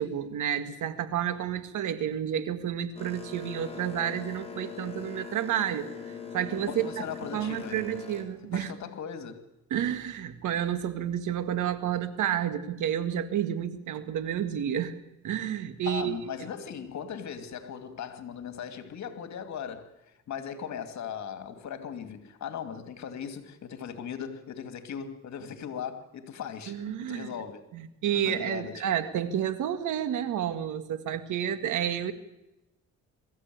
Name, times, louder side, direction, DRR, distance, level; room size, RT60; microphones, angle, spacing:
voice 1, 0.0-7.0 7.3-8.7 9.7-14.9 15.2-16.1 26.7-27.3 27.7-32.1, right 10 dB, 80° right, 1.9 m, -30 dB
Boat Water vehicle, 3.0-8.3, left 6 dB, 20° left, 4.6 m, -41 dB
voice 2, 6.7-8.0 8.5-9.4 15.9-19.9 20.3-27.6 28.1-28.9, left 7 dB, 65° left, 2.7 m, -38 dB
22.5 x 15.0 x 9.5 m
cardioid pair, 90°, 30 cm